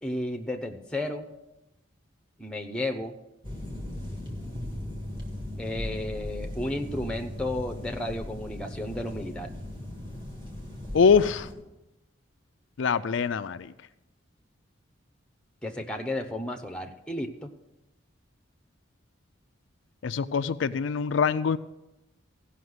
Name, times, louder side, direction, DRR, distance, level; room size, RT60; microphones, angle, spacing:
voice 1, 0.0-1.3 2.4-3.1 5.6-9.5 15.6-17.5, left 1 dB, 5° left, 5 dB, 0.8 m, -33 dB
sound 1, 3.4-11.5, left 1 dB, 25° right, 1.8 m, -38 dB
voice 2, 10.9-11.5 12.8-13.7 20.0-21.6, left 6 dB, 65° left, 11 dB, 0.4 m, -23 dB
15.5 x 5.8 x 7.9 m, 0.97 s
head